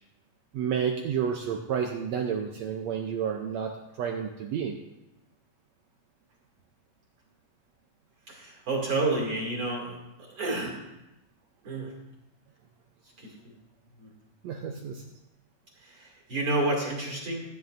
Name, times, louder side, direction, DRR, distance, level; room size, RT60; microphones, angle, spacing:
voice 1, 0.5-4.8 14.4-15.0, right 7 dB, 85° right, 3 dB, 1.5 m, -30 dB
voice 2, 8.3-10.0 10.3-10.8 11.6-11.9 13.2-13.4 14.0-14.1 15.8-17.4, right 2 dB, 40° right, -3 dB, 3.1 m, -30 dB
16.0 x 9.7 x 2.6 m, 0.94 s
omnidirectional pair, 3.8 m